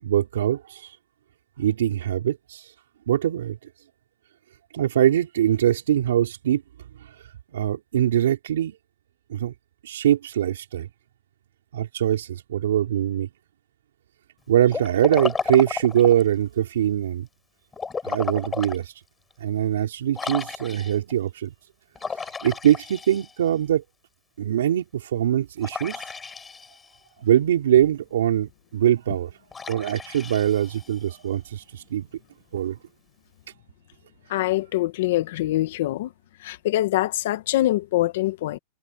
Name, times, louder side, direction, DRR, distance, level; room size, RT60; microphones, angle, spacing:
voice 1, 0.0-1.0 1.6-2.7 3.1-3.6 4.7-6.6 7.0-8.8 9.3-9.5 9.8-10.9 11.7-13.3 14.5-17.3 18.0-19.0 19.4-21.5 22.1-23.8 24.4-26.1 27.2-29.3 29.7-32.1 32.5-32.8, right 11 dB, 90° right, 4.6 m, -23 dB
Liquid, 14.7-16.3 17.7-18.8 19.3-19.4 20.1-21.1 22.0-23.6 25.6-27.0 29.5-31.2, left 5 dB, 15° left, 7.3 m, -33 dB
voice 2, 34.3-36.1 36.4-38.6, left 15 dB, 70° left, 1.5 m, -24 dB
supercardioid pair, 135°, 0 cm